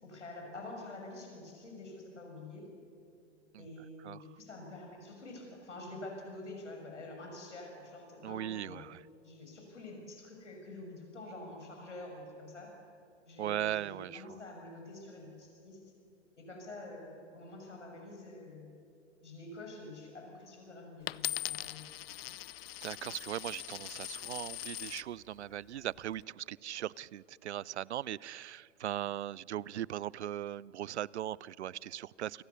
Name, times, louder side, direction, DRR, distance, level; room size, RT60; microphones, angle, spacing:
voice 1, 0.0-2.7 3.6-8.8 9.2-12.7 13.2-15.8 16.3-18.7 19.2-21.9, left 2 dB, 80° left, 6.3 m, -47 dB
voice 2, 8.2-9.0 13.4-14.4 22.8-32.4, right 12 dB, 70° right, 0.6 m, -39 dB
Coin (dropping), 21.1-25.1 25.8-26.2, left 14 dB, 55° left, 0.6 m, -41 dB
29.5 x 24.0 x 6.9 m
figure-of-eight pair, 105°, 35 cm